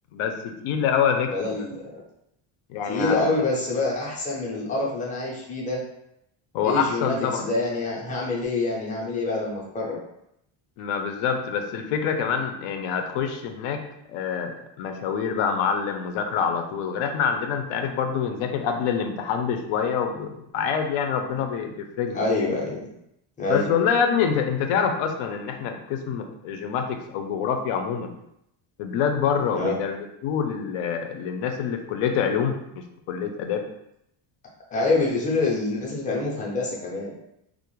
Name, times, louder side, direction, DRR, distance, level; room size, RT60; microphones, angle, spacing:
voice 1, 0.1-1.3 2.7-3.3 6.5-7.5 10.8-13.8 14.1-22.2 23.5-28.1 28.8-33.6, left 7 dB, 85° left, 5 dB, 0.6 m, -26 dB
voice 2, 1.3-1.7 2.9-5.8 6.6-10.0 22.1-22.9 23.4-23.7 29.5-29.8 34.7-37.1, left 3 dB, 15° left, -4 dB, 0.4 m, -26 dB
2.4 x 2.0 x 3.0 m, 0.78 s
cardioid pair, 165°, 49 cm